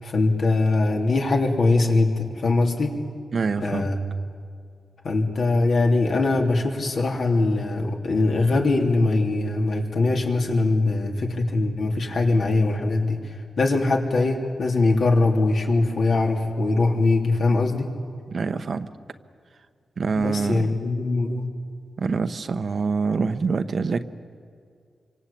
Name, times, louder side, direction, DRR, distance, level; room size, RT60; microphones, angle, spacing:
voice 1, 0.0-2.9 3.6-4.0 5.0-17.9 20.2-21.5, left 3 dB, 65° left, 1 dB, 3.2 m, -22 dB
voice 2, 3.3-3.9 18.3-18.9 20.0-20.7 22.0-24.0, right 4 dB, 55° right, 10 dB, 1.0 m, -25 dB
26.5 x 25.0 x 8.6 m, 2.2 s
wide cardioid pair, 110°, 0 cm